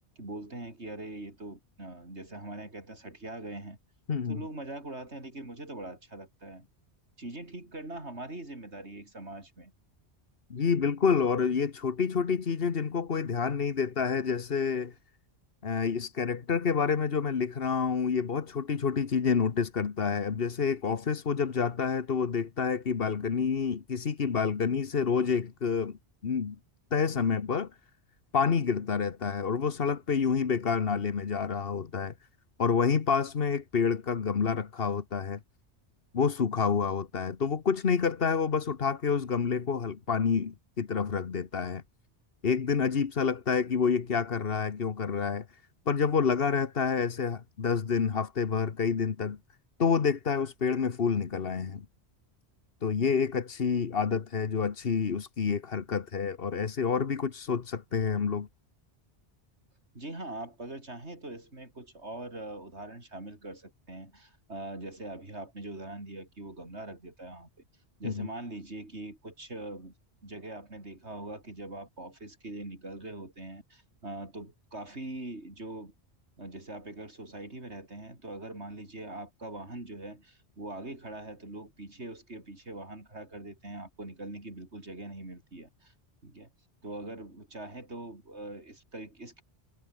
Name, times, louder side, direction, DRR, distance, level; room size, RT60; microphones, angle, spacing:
voice 1, 0.2-3.8 4.3-6.7 7.2-9.7 54.1-54.2 59.9-67.5 68.0-69.9 70.2-75.9 76.4-85.9 86.2-86.5 86.8-89.4, right 2 dB, 80° right, 6.1 m, -42 dB
voice 2, 4.1-4.4 10.5-14.9 15.6-26.0 26.2-26.6 26.9-27.7 28.3-32.1 32.6-35.4 36.1-41.8 42.4-45.4 45.9-49.4 49.8-51.8 52.8-58.5 68.0-68.3, left 6 dB, 60° left, 1.4 m, -28 dB
omnidirectional pair, 1.1 m